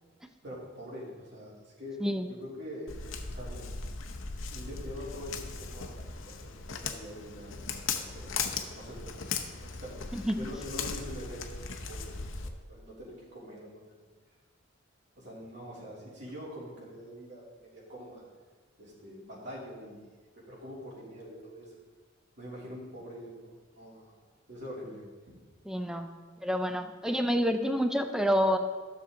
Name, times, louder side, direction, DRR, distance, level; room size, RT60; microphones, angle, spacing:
voice 1, 0.4-3.7 4.5-6.5 6.8-8.3 8.7-12.1 12.7-14.1 15.2-18.2 18.8-20.1 20.3-21.7 22.4-24.2 24.5-25.0, equal, 60° right, -6 dB, 3.2 m, -44 dB
Walk footsteps, 2.9-12.5, left 5 dB, 80° left, 0.8 m, -38 dB
voice 2, 25.7-26.1 26.4-28.6, equal, 5° right, 6 dB, 0.5 m, -28 dB
12.5 x 6.8 x 3.8 m, 1.4 s
head